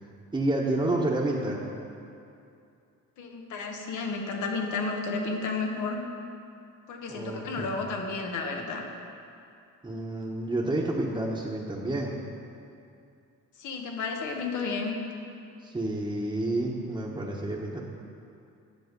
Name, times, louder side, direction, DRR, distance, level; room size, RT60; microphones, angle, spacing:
voice 1, 0.3-1.7 7.1-7.8 9.8-12.2 15.6-17.8, right 2 dB, 15° right, -5 dB, 1.1 m, -29 dB
voice 2, 3.2-6.0 6.9-8.8 13.6-15.0, left 4 dB, 80° left, 2 dB, 1.3 m, -32 dB
9.7 x 7.3 x 5.2 m, 2.5 s
cardioid pair, 90°, 30 cm